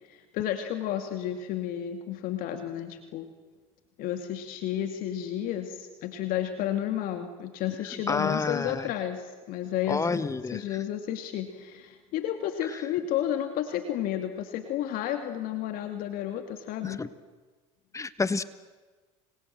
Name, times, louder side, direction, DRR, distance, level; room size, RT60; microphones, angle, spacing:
voice 1, 0.1-3.3 4.0-17.0, left 11 dB, 60° left, 7 dB, 2.5 m, -32 dB
voice 2, 8.1-8.9 9.9-10.6 16.8-17.1 17.9-18.4, left 4 dB, 20° left, 14 dB, 1.3 m, -29 dB
29.5 x 25.5 x 7.8 m, 1.3 s
hypercardioid pair, 80°, 16 cm